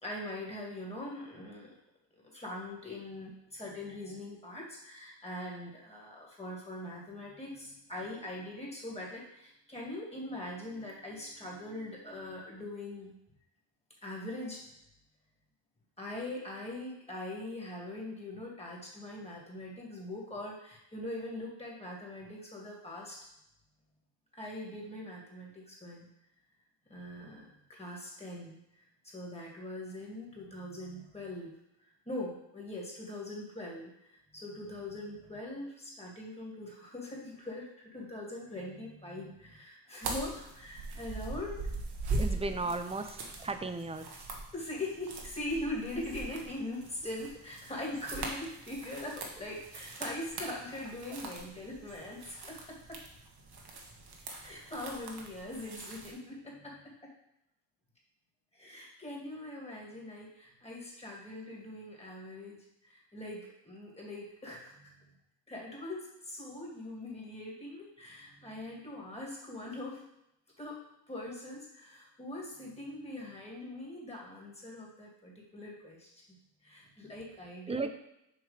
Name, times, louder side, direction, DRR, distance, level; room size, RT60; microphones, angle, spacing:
voice 1, 0.0-1.7 2.1-13.1 14.0-14.6 16.0-23.2 24.3-26.1 26.9-31.5 31.8-41.7 42.4-42.7 44.5-53.0 54.4-57.1 58.5-65.1 65.5-70.1 70.6-70.8 71.1-76.4 76.6-77.9, left 1 dB, 15° left, -3 dB, 2.3 m, -42 dB
sound 1, 40.0-56.1, right 3 dB, 55° right, 1.3 m, -41 dB
voice 2, 42.1-44.1 77.7-77.9, right 3 dB, 15° right, 8 dB, 0.5 m, -35 dB
6.5 x 3.2 x 5.1 m, 0.83 s
cardioid pair, 80°, 46 cm